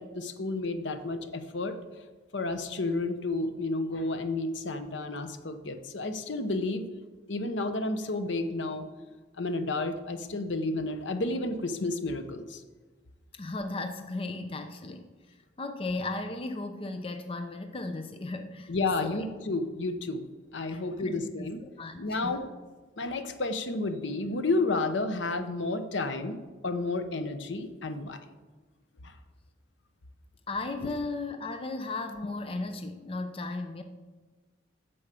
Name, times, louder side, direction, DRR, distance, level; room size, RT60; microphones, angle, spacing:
voice 1, 0.0-1.8 2.3-6.9 7.3-8.9 9.4-12.6 18.7-20.2 20.5-21.6 22.0-22.5 23.0-28.2 29.0-29.1, left 2 dB, 70° left, 9 dB, 0.8 m, -31 dB
voice 2, 13.3-18.7 19.0-19.3 20.7-21.5 21.8-22.4 30.5-33.8, left 2 dB, 30° left, 7 dB, 0.6 m, -36 dB
8.6 x 7.0 x 6.8 m, 1.3 s
head